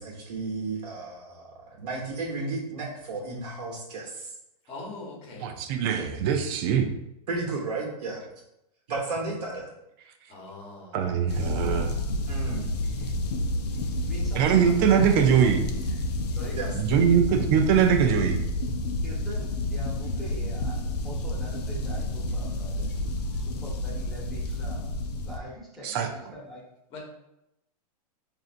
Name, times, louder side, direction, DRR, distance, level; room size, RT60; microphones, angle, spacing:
voice 1, 0.0-4.3 7.3-8.2 8.9-9.7 12.3-12.8 16.6-16.7, right 3 dB, 75° right, -3 dB, 1.0 m, -33 dB
voice 2, 4.7-5.5 10.3-11.0 26.9-27.0, left 3 dB, 30° left, -2 dB, 1.2 m, -41 dB
voice 3, 5.4-6.9 10.9-12.0 14.4-15.6 16.8-18.4 25.8-26.1, right 8 dB, 35° right, 6 dB, 0.5 m, -22 dB
sound 1, 11.3-25.4, left 1 dB, 80° left, 0.6 m, -30 dB
voice 4, 14.0-15.1 16.3-16.6 19.0-22.9 23.3-24.9 25.3-26.7, equal, ahead, -7 dB, 1.0 m, -43 dB
5.4 x 2.6 x 2.5 m, 0.86 s
hypercardioid pair, 145°, 20 cm